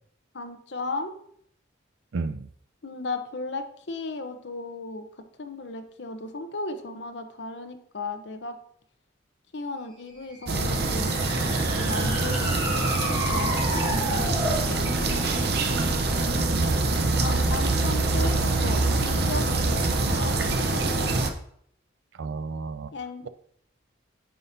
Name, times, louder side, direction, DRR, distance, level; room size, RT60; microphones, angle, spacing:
voice 1, 0.3-1.1 2.8-5.1 5.4-8.6 9.5-11.1 11.7-15.3 17.2-20.9 22.9-23.3, left 2 dB, 65° left, 7 dB, 0.8 m, -35 dB
voice 2, 2.1-2.5 16.6-16.9 18.4-18.6 18.9-19.0 22.2-22.9, right 4 dB, 85° right, 13 dB, 0.5 m, -32 dB
sound 1, 10.3-14.7, equal, 20° right, 1.5 m, -32 dB
sound 2, 10.5-21.3, right 2 dB, 55° right, 0.7 m, -25 dB
9.4 x 5.9 x 2.7 m, 0.66 s
head